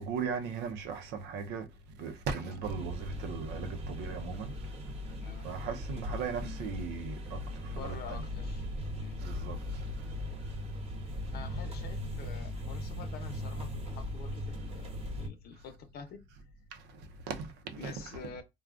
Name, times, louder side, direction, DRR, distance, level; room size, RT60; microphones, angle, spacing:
voice 1, 0.0-4.7 5.4-8.2 9.2-9.9 16.7-17.9, right 5 dB, 90° right, 0.7 m, -38 dB
sound 1, 2.6-15.3, left 1 dB, 35° right, 1.0 m, -39 dB
voice 2, 7.7-8.6 9.0-9.2 11.3-16.2 17.8-18.4, left 6 dB, 65° left, 0.8 m, -47 dB
3.6 x 2.4 x 2.4 m
cardioid pair, 110°, 17 cm